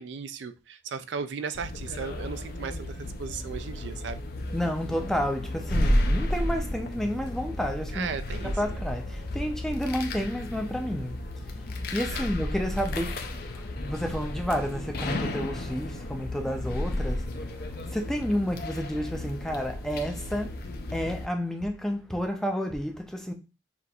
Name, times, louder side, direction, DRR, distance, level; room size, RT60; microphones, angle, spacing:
voice 1, 0.0-4.2 7.9-8.8 12.1-12.3, right 6 dB, 65° right, 0.4 m, -36 dB
sound 1, 1.5-21.3, left 1 dB, 55° left, 0.5 m, -32 dB
voice 2, 4.5-8.1 8.6-11.2 11.9-13.2 13.5-17.3 17.9-20.5 20.9-23.3, equal, ahead, 0.5 m, -30 dB
5.9 x 2.5 x 2.7 m
head